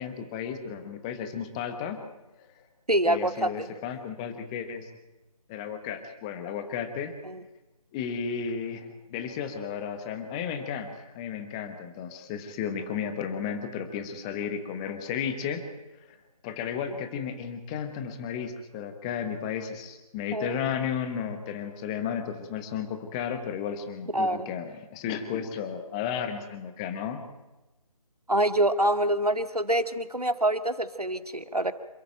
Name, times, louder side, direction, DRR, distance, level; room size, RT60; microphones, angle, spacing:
voice 1, 0.0-2.0 3.1-4.9 5.5-7.1 7.9-15.6 16.4-27.2, left 7 dB, 10° left, 8 dB, 1.1 m, -33 dB
voice 2, 2.9-3.7 7.2-7.4 20.3-20.6 24.1-24.5 28.3-31.7, right 1 dB, 85° right, 9 dB, 2.1 m, -26 dB
27.5 x 13.0 x 9.0 m, 1.1 s
figure-of-eight pair, 155°, 19 cm